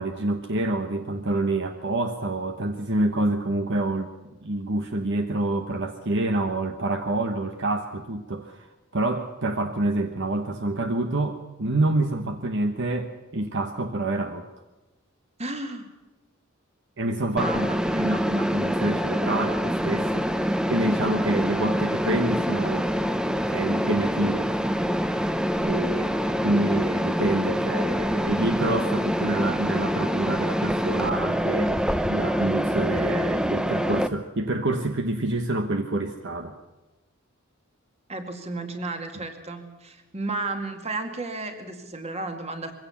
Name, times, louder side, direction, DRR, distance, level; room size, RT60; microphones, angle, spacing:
voice 1, 0.0-4.1 4.4-8.7 8.9-14.5 17.0-22.9 23.4-24.6 25.0-25.3 25.6-31.8 32.1-36.5 39.1-39.2, right 2 dB, 55° right, 7 dB, 1.2 m, -27 dB
voice 2, 15.4-15.9 17.3-18.2 38.1-42.7, right 2 dB, 30° right, 6 dB, 2.2 m, -33 dB
Mechanisms, 17.4-34.1, equal, 5° right, 0.6 m, -25 dB
22.0 x 16.5 x 7.1 m, 1.1 s
head